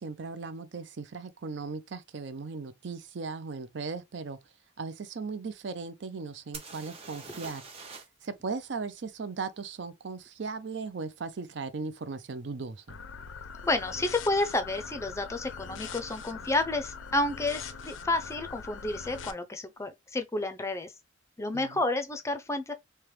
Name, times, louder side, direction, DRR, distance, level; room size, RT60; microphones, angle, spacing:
voice 1, 0.0-4.4 4.8-7.6 8.2-13.0 21.5-21.8, right 4 dB, 65° right, 0.5 m, -37 dB
sound 1, 6.5-8.3 8.5-8.6 12.0-12.1 12.8-13.0 13.2-13.8 15.8-15.9 16.2-16.3, right 4 dB, 30° right, 0.8 m, -45 dB
sound 2, 12.9-19.3, left 5 dB, 85° left, 0.5 m, -42 dB
voice 2, 13.6-20.9 21.4-22.7, left 2 dB, 15° left, 0.5 m, -30 dB
3.3 x 2.9 x 3.1 m
head